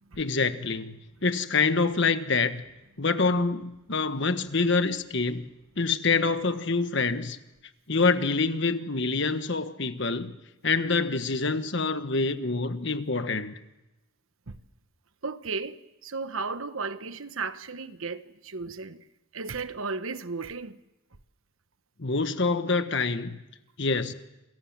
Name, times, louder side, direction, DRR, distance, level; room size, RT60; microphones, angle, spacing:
voice 1, 0.2-2.6 3.0-5.5 5.8-7.4 7.9-10.3 10.6-13.5 22.0-23.4 23.8-24.1, left 4 dB, 55° left, 1.4 m, -26 dB
voice 2, 15.2-19.0 19.3-20.8, right 4 dB, 70° right, 1.1 m, -35 dB
28.5 x 22.0 x 7.6 m
head